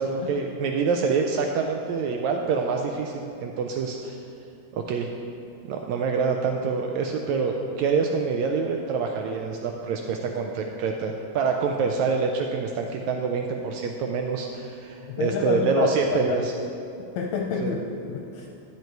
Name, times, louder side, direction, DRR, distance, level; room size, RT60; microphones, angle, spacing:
voice 1, 0.0-4.2 4.7-5.1 5.7-16.5 17.6-17.7, right 5 dB, 80° right, 3 dB, 1.6 m, -26 dB
voice 2, 15.0-16.4 17.2-17.8 18.1-18.5, left 6 dB, 75° left, 0 dB, 1.7 m, -28 dB
10.5 x 7.9 x 4.6 m, 2.7 s
omnidirectional pair, 3.7 m